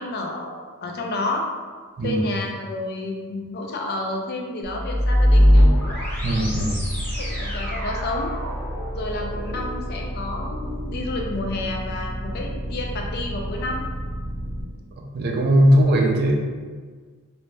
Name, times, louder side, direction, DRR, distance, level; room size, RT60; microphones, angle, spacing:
voice 1, 0.0-1.5 2.0-5.7 7.1-8.3 8.9-13.8, left 2 dB, 45° left, 1 dB, 0.4 m, -30 dB
sound 1, 4.6-14.6, equal, 10° left, 0.7 m, -23 dB
voice 2, 6.2-6.8 15.1-16.4, equal, 45° right, 1 dB, 0.4 m, -19 dB
2.6 x 2.1 x 3.2 m, 1.5 s
head